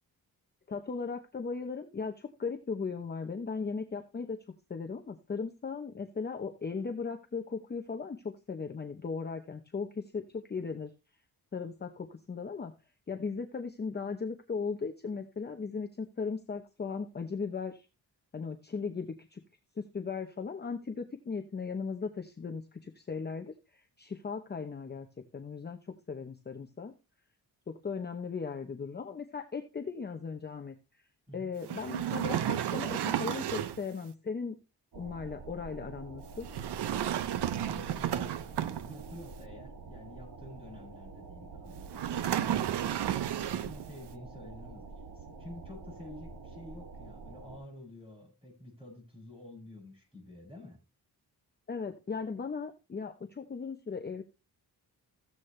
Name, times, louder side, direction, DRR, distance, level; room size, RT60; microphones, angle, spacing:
voice 1, 0.7-4.4 4.7-10.9 11.5-12.7 13.1-17.9 18.3-19.4 19.8-25.1 25.3-25.8 26.1-26.9 27.7-30.7 31.3-34.6 34.9-36.5 51.7-54.2, left 5 dB, 25° left, 6 dB, 0.8 m, -37 dB
sound 1, 31.6-33.9 36.4-39.2 41.9-43.9, right 10 dB, 85° right, 0.8 m, -32 dB
sound 2, 34.9-47.6, right 4 dB, 65° right, 2.5 m, -47 dB
voice 2, 37.6-50.8, left 1 dB, 15° right, 0 dB, 7.5 m, -49 dB
14.5 x 8.4 x 3.2 m, 0.29 s
wide cardioid pair, 140°, 39 cm